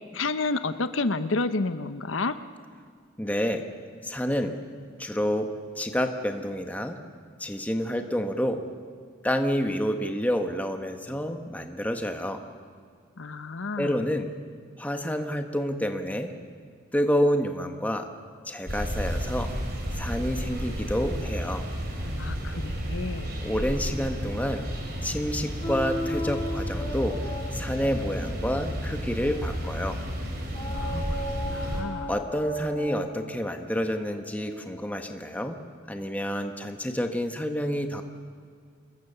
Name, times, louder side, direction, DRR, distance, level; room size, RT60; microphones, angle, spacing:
voice 1, 0.1-2.4 13.2-14.0 22.1-23.4 30.7-31.0 31.4-32.1, left 3 dB, 85° left, 11 dB, 0.9 m, -30 dB
voice 2, 3.2-3.6 4.0-4.6 5.0-5.5 5.8-7.0 7.4-8.6 9.2-12.4 13.8-14.3 14.8-16.3 16.9-18.1 18.4-19.5 20.0-21.6 23.4-24.6 25.0-27.2 27.5-30.0 32.1-35.6 35.9-38.0, equal, 10° left, 5 dB, 1.3 m, -28 dB
sound 1, 18.7-31.8, equal, 50° right, 4.3 m, -32 dB
sound 2, 25.6-29.8 30.5-35.3, left 1 dB, 25° left, 3.3 m, -37 dB
27.5 x 21.5 x 6.9 m, 2.1 s
head